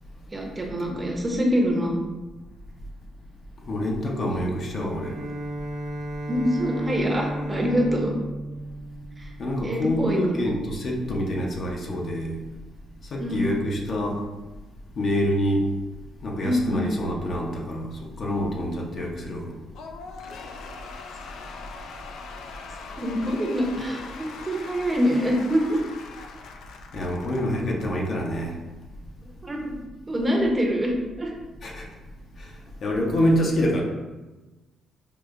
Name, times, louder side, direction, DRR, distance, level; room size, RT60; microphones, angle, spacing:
voice 1, 0.3-2.0 4.3-4.4 4.7-4.8 6.3-8.1 9.2-9.3 9.6-10.5 13.2-13.5 16.4-16.9 23.0-25.8 29.4-29.8 30.1-31.3, equal, 25° right, 0 dB, 0.6 m, -25 dB
voice 2, 3.7-5.1 9.4-12.3 13.1-14.2 15.0-15.7 16.2-17.9 18.2-19.5 26.9-28.6 31.6-31.9 32.8-33.8, equal, 55° left, -1 dB, 0.7 m, -26 dB
Bowed string instrument, 4.9-9.8, right 1 dB, 70° right, 0.5 m, -33 dB
Cheering / Applause / Crowd, 19.7-28.4, left 4 dB, 80° left, 0.3 m, -41 dB
4.9 x 2.1 x 2.4 m, 1.1 s
cardioid pair, 90°, 0 cm